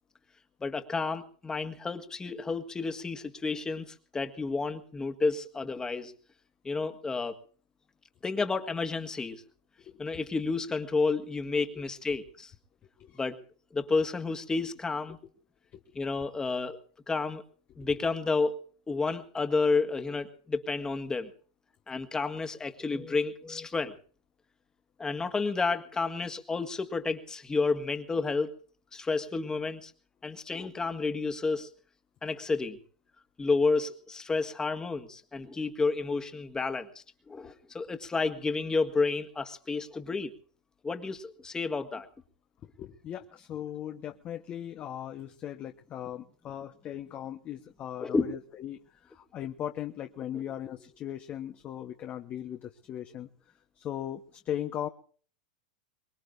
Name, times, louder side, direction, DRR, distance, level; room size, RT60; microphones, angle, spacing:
voice 1, 0.6-6.1 6.6-7.4 8.2-9.4 10.0-12.5 13.1-13.4 13.7-15.2 16.0-16.8 17.1-17.4 17.8-18.6 18.9-21.3 21.9-24.0 25.0-28.6 28.9-29.9 30.2-31.7 32.2-32.8 33.4-40.3 40.8-42.1 48.0-48.3, left 4 dB, 15° left, 7 dB, 1.8 m, -30 dB
voice 2, 42.6-54.9, left 11 dB, 35° left, 6 dB, 1.1 m, -39 dB
24.0 x 20.5 x 2.6 m, 0.43 s
hypercardioid pair, 115°, 4 cm